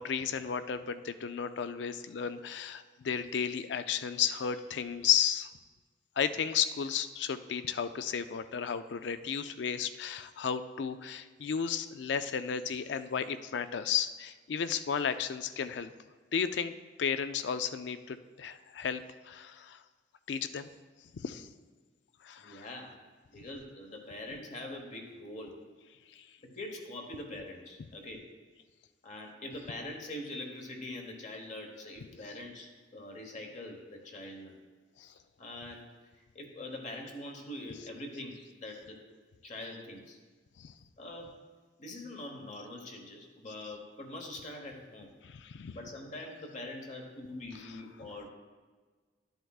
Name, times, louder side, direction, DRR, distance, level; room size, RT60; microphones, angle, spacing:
voice 1, 0.0-5.5 6.2-15.9 16.3-16.7 17.0-19.8 20.3-20.7 21.2-21.5 22.2-22.7 26.2-26.3 35.0-35.1 40.6-40.7 45.2-45.8, left 7 dB, 65° left, 11 dB, 0.4 m, -33 dB
voice 2, 22.4-22.9 23.3-25.6 26.4-28.3 29.0-34.6 35.1-35.9 36.3-39.0 39.4-40.2 41.0-41.4 41.8-45.1 45.6-48.3, left 1 dB, 40° left, 2 dB, 1.2 m, -43 dB
11.5 x 7.8 x 2.4 m, 1.4 s
head